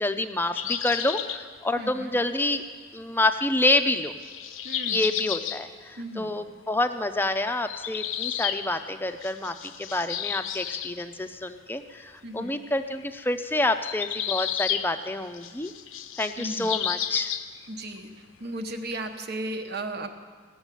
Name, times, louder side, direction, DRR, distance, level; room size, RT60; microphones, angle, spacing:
voice 1, 0.0-2.6 2.9-4.1 4.9-15.7 16.2-17.3, left 2 dB, 10° left, 8 dB, 0.6 m, -28 dB
sound 1, 0.6-1.4 2.9-3.0 4.1-5.6 7.5-8.9 9.2-11.0 13.3-13.4 13.8-15.1 15.3-17.7 17.9-18.0 19.0-19.1, left 10 dB, 85° left, 0.7 m, -32 dB
voice 2, 1.8-2.2 4.6-5.1 6.0-6.4 12.2-12.6 16.4-16.8 17.7-18.1 18.4-20.1, right 1 dB, 55° right, 6 dB, 1.1 m, -35 dB
16.0 x 7.2 x 9.1 m, 1.5 s
head